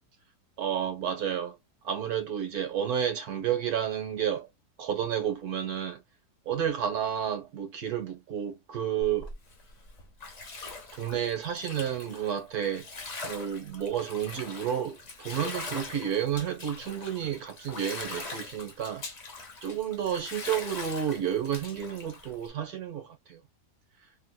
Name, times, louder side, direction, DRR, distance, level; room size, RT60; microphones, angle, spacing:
voice 1, 0.6-1.6 1.8-4.5 4.8-6.0 6.4-9.3 10.9-12.9 13.2-19.1 19.6-23.4, right 9 dB, 65° right, 1.4 m, -31 dB
Bathtub (filling or washing), 9.0-22.5, left 3 dB, 40° left, 0.6 m, -42 dB
3.7 x 2.7 x 2.3 m
omnidirectional pair, 1.8 m